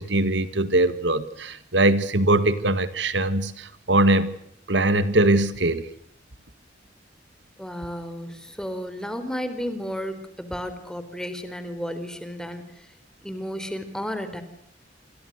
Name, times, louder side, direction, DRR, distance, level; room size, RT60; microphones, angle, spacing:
voice 1, 0.0-4.4 4.7-5.9, right 2 dB, 70° right, 13 dB, 1.9 m, -21 dB
voice 2, 7.6-12.9 13.2-14.4, equal, 5° left, 10 dB, 4.0 m, -33 dB
28.5 x 27.5 x 6.5 m, 0.68 s
head